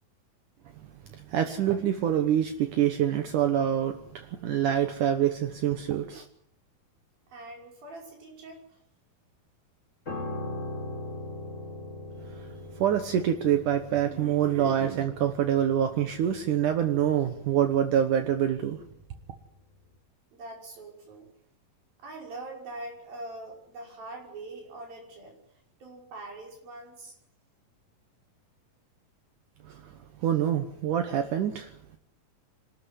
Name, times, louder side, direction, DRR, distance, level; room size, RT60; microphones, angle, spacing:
voice 1, 1.1-6.3 12.3-12.5 12.8-18.8 29.6-31.7, right 10 dB, 65° right, 8 dB, 2.6 m, -26 dB
voice 2, 7.3-8.8 20.3-21.3 22.0-25.4 25.8-27.2, right 2 dB, 85° right, 1 dB, 7.5 m, -43 dB
Piano, 10.1-19.4 19.7-20.0, left 2 dB, 20° left, 3.7 m, -41 dB
25.0 x 13.5 x 9.8 m, 0.68 s
omnidirectional pair, 4.1 m